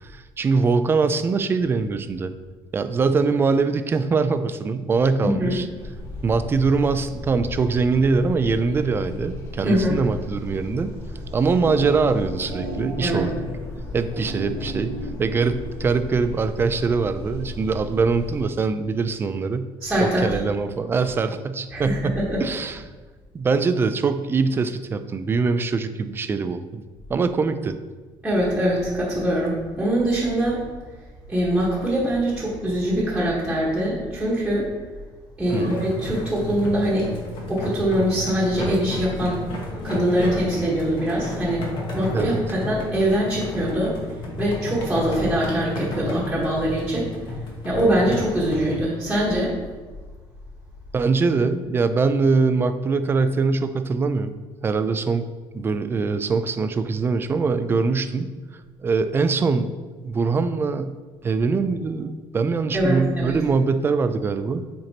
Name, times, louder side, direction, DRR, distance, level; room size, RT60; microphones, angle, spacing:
voice 1, 0.0-2.3 2.7-5.7 6.2-10.9 11.3-13.3 13.9-19.7 20.0-22.8 23.3-26.8 27.1-27.8 35.5-35.7 42.1-42.4 50.9-54.3 54.6-55.2 55.5-58.3 58.8-59.8 60.0-60.9 61.2-64.6, right 4 dB, 25° right, 10 dB, 0.3 m, -23 dB
voice 2, 5.2-5.5 9.6-9.9 13.0-13.2 19.8-20.4 21.7-22.4 28.2-30.6 31.3-34.7 35.4-37.1 37.5-39.4 39.8-41.6 41.9-44.0 44.4-47.1 47.6-49.5 62.7-63.4, right 1 dB, 5° right, -7 dB, 1.4 m, -23 dB
sound 1, 5.8-18.4, left 2 dB, 30° left, 1.5 m, -36 dB
sound 2, 11.1-16.1, right 3 dB, 65° right, 0.9 m, -35 dB
sound 3, 35.5-48.7, left 2 dB, 55° left, 1.5 m, -32 dB
7.7 x 4.5 x 2.9 m, 1.4 s
cardioid pair, 135°, 9 cm